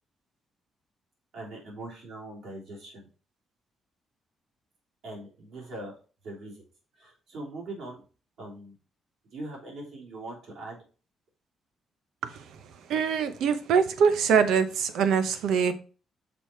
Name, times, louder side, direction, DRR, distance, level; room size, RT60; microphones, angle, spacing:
voice 1, 1.3-3.1 5.0-5.9 6.2-6.6 7.0-8.0 8.4-8.7 9.3-10.8, right 2 dB, 60° right, -2 dB, 3.1 m, -41 dB
voice 2, 12.2-15.7, right 6 dB, 75° right, 11 dB, 0.8 m, -24 dB
6.1 x 5.0 x 4.4 m, 0.37 s
cardioid pair, 180°, 0 cm